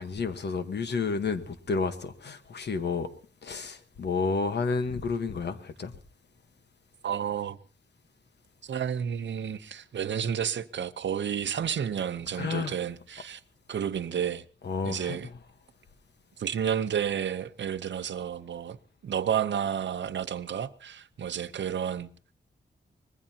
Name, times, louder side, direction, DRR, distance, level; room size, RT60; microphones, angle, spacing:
voice 1, 0.0-3.1 3.4-5.9 12.3-12.7 14.6-15.2, left 4 dB, 65° left, 1.3 m, -30 dB
voice 2, 7.0-7.6 8.6-13.4 13.7-14.4 14.8-15.3 16.4-18.8 19.0-22.1, right 8 dB, 80° right, 0.8 m, -31 dB
24.0 x 20.5 x 2.9 m
wide cardioid pair, 150°, 19 cm